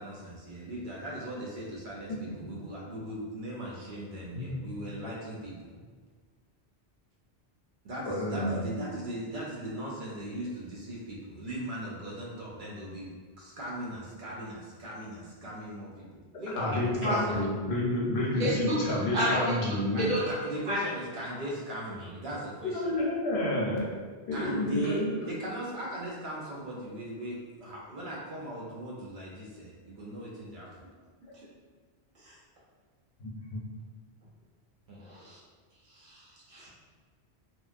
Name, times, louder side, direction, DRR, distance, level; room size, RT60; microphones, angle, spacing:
voice 1, 0.0-5.7 7.8-13.1 13.4-17.2 19.9-22.9 24.3-30.7 34.9-35.1, right 1 dB, 60° right, -4 dB, 0.6 m, -39 dB
voice 2, 4.3-4.8 8.1-8.7 16.5-20.0 22.6-23.8 24.3-25.1 33.2-33.6, left 1 dB, 70° left, -5 dB, 0.9 m, -30 dB
voice 3, 17.0-17.4 18.4-18.7 19.1-19.4 20.0-20.2 20.7-20.8 32.2-32.3 35.0-35.4 36.0-36.7, equal, 80° right, -8 dB, 1.2 m, -30 dB
2.8 x 2.2 x 2.4 m, 1.5 s
omnidirectional pair, 1.1 m